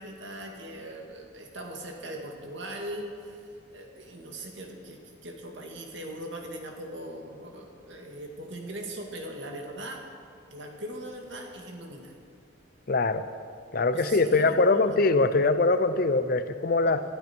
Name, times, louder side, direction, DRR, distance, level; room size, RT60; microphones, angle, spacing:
voice 1, 0.0-10.0 10.5-12.2 13.9-15.0, right 1 dB, 65° right, 2 dB, 2.1 m, -40 dB
voice 2, 12.9-13.2 13.7-17.0, left 3 dB, 50° left, 12 dB, 0.6 m, -23 dB
18.5 x 12.5 x 4.5 m, 2.3 s
head